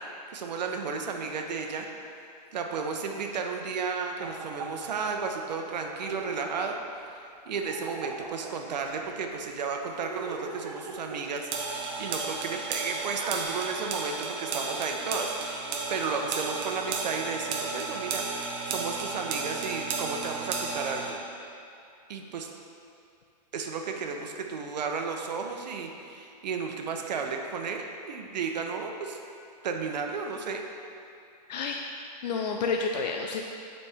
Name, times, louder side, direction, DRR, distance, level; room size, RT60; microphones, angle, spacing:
voice 1, 0.3-1.9 2.5-6.8 7.5-15.6 15.9-18.4 18.7-21.2 22.1-22.5 23.5-29.2 29.6-30.6, right 5 dB, 90° right, 3 dB, 0.7 m, -33 dB
sound 1, 4.2-5.3 5.6-5.7 6.0-6.8 7.7-9.1 9.9-11.8 12.7-12.8 13.2-13.4, right 4 dB, 45° right, 0.9 m, -40 dB
sound 2, 11.5-21.1, right 4 dB, 30° right, 0.6 m, -33 dB
voice 2, 31.5-31.8 32.2-33.4, left 4 dB, 90° left, 2 dB, 0.5 m, -29 dB
8.2 x 4.2 x 3.4 m, 2.6 s
hypercardioid pair, 150°, 21 cm